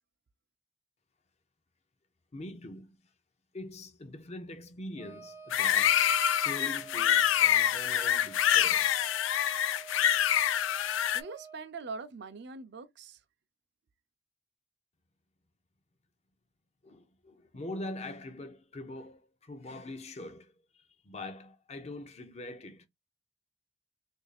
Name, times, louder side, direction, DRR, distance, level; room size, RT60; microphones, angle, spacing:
voice 1, 2.3-3.0 3.5-9.0 9.5-9.6 16.8-22.9, left 1 dB, 35° left, 0.6 m, -43 dB
Wind instrument woodwind instrument, 5.0-11.7, right 5 dB, 10° right, 0.5 m, -49 dB
sound 1, 5.5-11.2, left 10 dB, 80° left, 0.3 m, -26 dB
voice 2, 11.1-13.2, right 4 dB, 60° right, 0.5 m, -42 dB
2.8 x 2.6 x 4.0 m
head